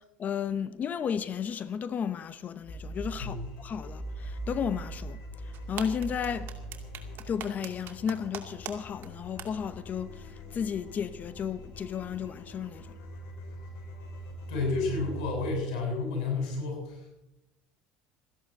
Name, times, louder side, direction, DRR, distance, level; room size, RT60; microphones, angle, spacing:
voice 1, 0.2-5.2 5.7-6.5 7.3-10.1 10.5-12.9, left 7 dB, 40° left, 0.8 m, -33 dB
sound 1, 2.6-15.5, right 1 dB, 65° left, 4.9 m, -42 dB
voice 2, 3.2-3.6 14.5-17.1, left 3 dB, 90° left, 7.6 m, -31 dB
sound 2, 5.5-8.7 9.0-9.1 9.4-9.5, right 11 dB, 55° right, 2.5 m, -39 dB
14.0 x 11.0 x 8.0 m
supercardioid pair, 105°, 4 cm